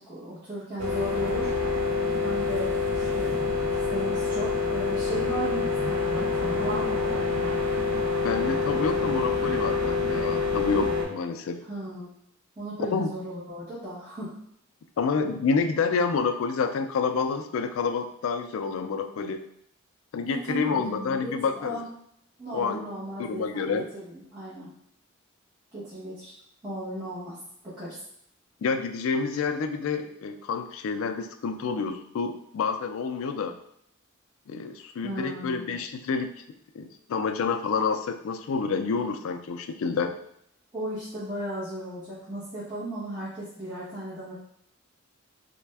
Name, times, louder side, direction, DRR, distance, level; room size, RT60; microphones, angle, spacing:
voice 1, 0.0-1.5 2.2-3.4 3.9-7.2 11.7-12.1 12.6-14.4 20.2-21.9 22.4-24.7 25.7-26.3 26.6-27.4 27.6-28.0 35.0-35.7 40.7-44.3, right 1 dB, 20° right, -13 dB, 0.9 m, -36 dB
sound 1, 0.8-11.0, left 4 dB, 70° right, 0.6 m, -26 dB
voice 2, 8.2-11.7 12.9-13.1 15.0-19.4 20.1-21.8 22.5-22.8 23.2-23.9 28.6-33.6 34.5-36.3 36.7-40.1, left 5 dB, 75° left, 6 dB, 0.3 m, -28 dB
3.3 x 2.1 x 3.3 m, 0.71 s
head